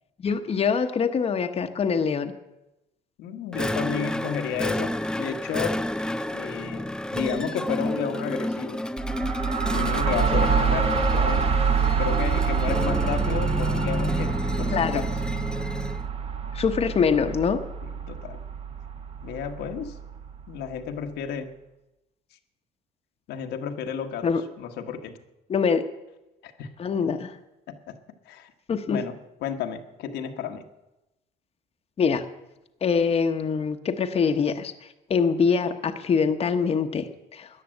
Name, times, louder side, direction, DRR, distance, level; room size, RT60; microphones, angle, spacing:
voice 1, 0.2-2.3 14.7-15.0 16.5-17.6 24.2-24.4 25.5-25.8 26.8-27.3 28.7-29.0 32.0-32.3 32.8-37.5, left 6 dB, 35° left, 6 dB, 1.0 m, -24 dB
voice 2, 3.2-5.8 6.3-8.8 9.7-11.4 12.0-15.1 17.8-18.4 19.2-20.0 20.5-21.5 23.3-24.3 24.6-25.2 26.4-26.7 27.7-27.9 28.2-28.5 28.9-30.6, left 7 dB, 85° left, 4 dB, 1.4 m, -32 dB
sound 1, 3.5-16.1, left 1 dB, 5° left, 0.4 m, -30 dB
sound 2, 9.0-20.6, right 6 dB, 35° right, 1.2 m, -26 dB
14.0 x 10.0 x 7.7 m, 0.96 s
cardioid pair, 110°, 17 cm